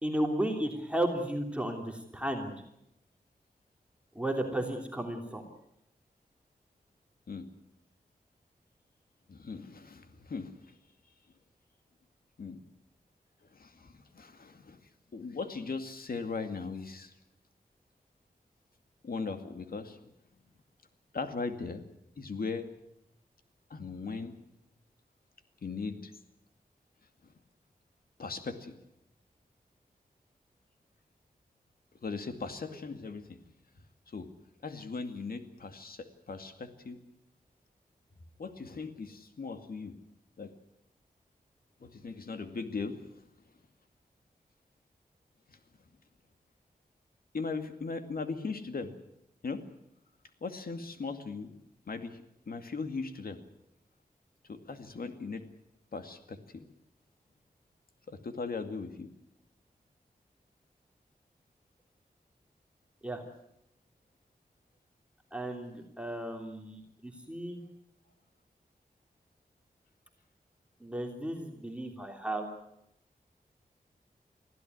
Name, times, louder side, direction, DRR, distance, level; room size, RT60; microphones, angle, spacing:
voice 1, 0.0-2.5 4.1-5.4 63.0-63.2 65.3-67.6 70.8-72.5, right 1 dB, 5° right, 2 dB, 3.2 m, -34 dB
voice 2, 9.3-10.8 12.4-12.6 13.5-14.8 15.1-17.1 19.0-20.0 21.1-21.8 22.2-22.7 23.7-24.3 25.6-26.1 27.2-27.3 28.2-28.8 32.0-33.4 34.1-34.3 34.6-37.0 38.4-39.9 40.4-40.5 41.8-43.1 45.5-45.6 47.3-48.9 49.4-49.6 50.4-51.6 51.9-52.2 52.5-53.4 54.5-55.4 55.9-56.6 58.1-59.1 65.7-65.9, left 4 dB, 70° left, 7 dB, 2.3 m, -38 dB
24.5 x 15.5 x 9.5 m, 0.79 s
wide cardioid pair, 105°, 16 cm